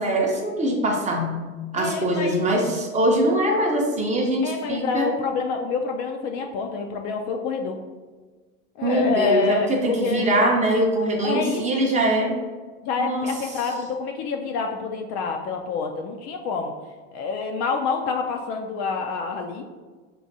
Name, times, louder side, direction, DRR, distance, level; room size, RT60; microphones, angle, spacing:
voice 1, 0.0-1.4 1.7-5.1 8.8-12.3 13.0-13.3, right 1 dB, 15° right, 0 dB, 0.6 m, -22 dB
voice 2, 1.8-2.5 4.4-7.8 8.8-10.6 11.2-11.8 12.8-16.7 17.1-19.7, left 5 dB, 40° left, 3 dB, 0.4 m, -27 dB
6.2 x 2.5 x 2.6 m, 1.4 s
hypercardioid pair, 110°, 42 cm